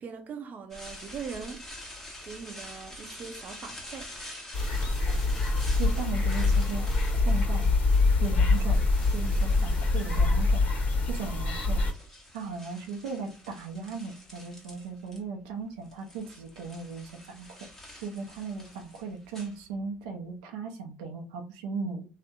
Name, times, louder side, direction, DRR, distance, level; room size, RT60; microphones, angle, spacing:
voice 1, 0.0-1.6 2.2-4.1, right 6 dB, 45° right, 0.6 m, -41 dB
sound 1, 0.7-10.6 11.4-15.2 15.5-20.1, left 1 dB, 10° left, 1.0 m, -47 dB
sound 2, 4.5-11.9, left 3 dB, 45° left, 1.3 m, -25 dB
voice 2, 5.8-7.7 8.2-8.8 9.1-10.7 11.0-11.8 12.3-17.6 18.0-22.1, right 4 dB, 90° right, 0.5 m, -37 dB
2.7 x 2.0 x 2.4 m
supercardioid pair, 80°, 4 cm